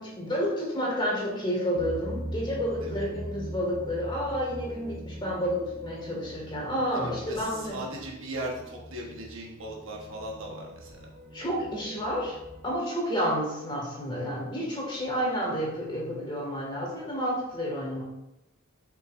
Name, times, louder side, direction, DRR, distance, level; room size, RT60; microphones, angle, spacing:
voice 1, 0.0-7.8 11.3-12.4 12.6-18.0, equal, 25° left, -3 dB, 1.9 m, -30 dB
sound 1, 1.7-12.8, right 1 dB, 45° right, 0.8 m, -42 dB
voice 2, 6.9-11.1, right 1 dB, 65° right, -1 dB, 1.3 m, -38 dB
7.2 x 5.6 x 2.6 m, 0.91 s
head